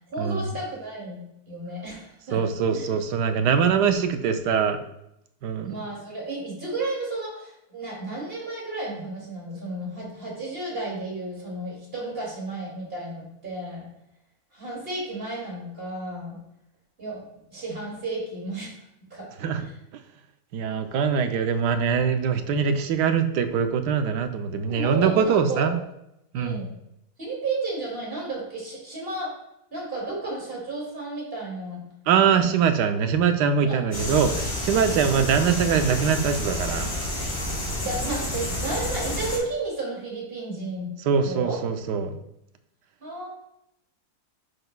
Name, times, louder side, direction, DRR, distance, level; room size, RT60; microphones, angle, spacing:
voice 1, 0.1-1.2 1.5-2.4 2.7-2.9 5.6-13.9 14.5-16.4 17.0-17.2 17.5-18.7 19.1-19.3 19.5-19.6 24.7-25.8 26.4-26.7 27.2-29.3 29.7-31.8 32.3-32.5 33.6-33.8 37.8-40.9 41.2-41.6 43.0-43.3, right 2 dB, 35° right, -3 dB, 2.8 m, -32 dB
voice 2, 2.3-4.8 5.4-5.8 19.4-19.7 20.5-25.8 26.3-26.6 32.1-36.9 41.1-42.1, right 6 dB, 85° right, 8 dB, 1.3 m, -23 dB
sound 1, 33.9-39.4, left 1 dB, 80° left, 3.5 m, -29 dB
10.5 x 5.9 x 2.3 m, 0.81 s
omnidirectional pair, 1.8 m